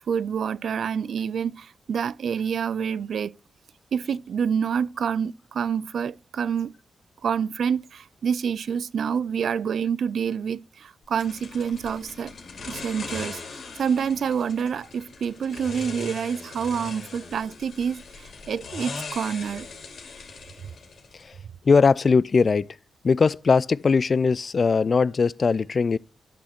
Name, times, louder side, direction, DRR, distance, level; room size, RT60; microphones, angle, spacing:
voice 1, 0.1-3.3 3.9-6.7 7.2-12.3 12.7-13.4 13.8-18.0 18.5-19.7, right 7 dB, 75° right, 0.4 m, -27 dB
sound 1, 11.2-21.3, left 4 dB, 70° left, 2.7 m, -40 dB
voice 2, 21.6-22.8 23.0-26.0, left 5 dB, 55° left, 0.4 m, -20 dB
10.0 x 6.4 x 4.4 m
supercardioid pair, 45°, 0 cm